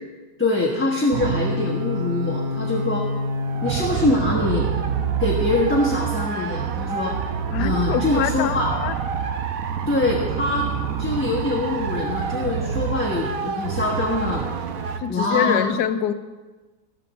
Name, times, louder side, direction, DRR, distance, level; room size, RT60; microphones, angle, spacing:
voice 1, 0.4-3.1 3.6-4.7 5.2-7.2 7.6-8.7 9.9-10.7 11.0-14.4 15.1-15.7, left 2 dB, 10° left, -4 dB, 1.1 m, -23 dB
sound 1, 1.1-15.0, right 5 dB, 60° right, 1.2 m, -27 dB
voice 2, 7.5-8.9 15.0-16.1, left 10 dB, 80° left, 12 dB, 1.2 m, -24 dB
13.5 x 13.0 x 4.3 m, 1.3 s
omnidirectional pair, 1.8 m